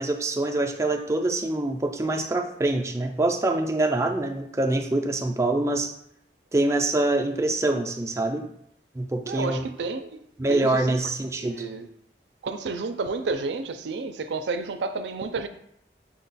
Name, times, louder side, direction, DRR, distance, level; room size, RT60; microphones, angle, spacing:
voice 1, 0.0-5.9 6.5-8.4 9.0-9.6 10.4-11.6, right 2 dB, 15° right, 3 dB, 0.3 m, -25 dB
voice 2, 9.2-10.2 10.5-11.0 11.3-11.9 12.4-15.5, right 4 dB, 85° right, 9 dB, 0.4 m, -31 dB
5.6 x 2.2 x 4.0 m, 0.73 s
head